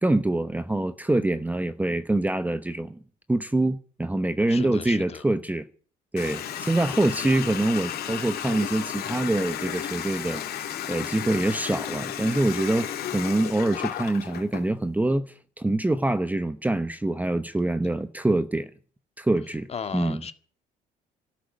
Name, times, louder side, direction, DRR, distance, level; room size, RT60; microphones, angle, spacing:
voice 1, 0.0-3.0 3.3-5.6 6.1-10.4 10.9-18.7 19.2-19.7 19.9-20.2, right 2 dB, 10° right, 0.9 m, -25 dB
voice 2, 4.5-5.2 6.9-7.2 19.7-20.3, left 6 dB, 35° left, 1.9 m, -36 dB
Water tap faucet, 6.2-14.7, left 10 dB, 65° left, 2.8 m, -33 dB
12.5 x 10.5 x 9.2 m
cardioid pair, 110°, 17 cm